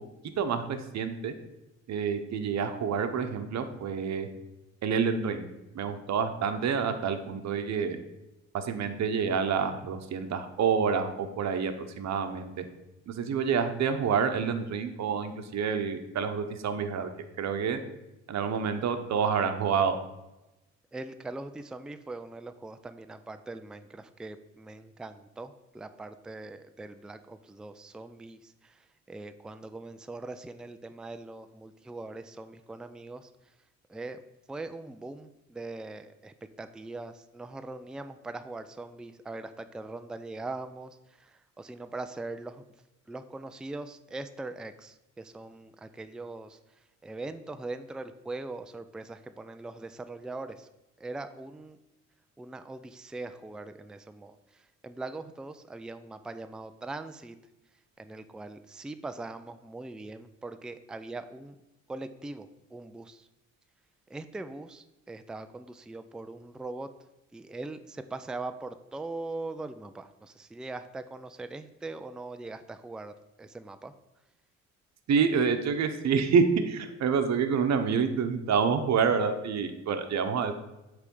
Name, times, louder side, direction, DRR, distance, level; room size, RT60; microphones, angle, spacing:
voice 1, 0.2-1.3 1.9-4.3 4.8-5.5 5.7-8.0 8.5-12.7 13.1-17.1 17.4-17.8 18.3-20.0 75.1-80.5, right 6 dB, 60° right, 8 dB, 0.9 m, -28 dB
voice 2, 20.9-33.3 33.9-34.2 34.5-42.6 43.1-46.6 47.0-50.7 51.0-51.8 52.4-57.4 58.0-61.6 61.9-63.3 64.1-66.9 67.3-73.9, right 2 dB, 5° right, 10 dB, 0.3 m, -41 dB
8.1 x 3.4 x 5.4 m, 0.97 s
cardioid pair, 90°, 30 cm